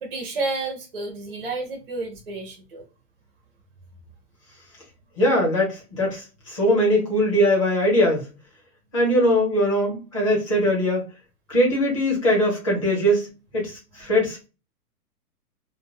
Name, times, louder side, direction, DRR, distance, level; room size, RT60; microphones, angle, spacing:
voice 1, 0.0-2.9, right 3 dB, 40° right, 0.5 m, -31 dB
voice 2, 5.2-8.3 8.9-11.0 11.5-13.3 13.5-14.4, equal, 20° left, 0.8 m, -21 dB
2.2 x 2.0 x 3.3 m
hypercardioid pair, 180°, 48 cm